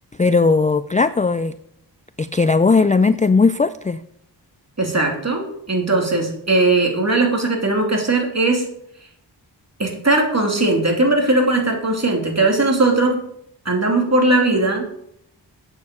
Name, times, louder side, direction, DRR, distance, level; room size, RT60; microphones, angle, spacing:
voice 1, 0.2-1.5 2.2-4.0, left 4 dB, 20° left, 13 dB, 0.4 m, -17 dB
voice 2, 4.8-8.7 9.8-13.2 13.6-14.8, right 2 dB, 35° right, 1 dB, 3.1 m, -19 dB
8.4 x 7.3 x 6.9 m, 0.73 s
cardioid pair, 50°, 45 cm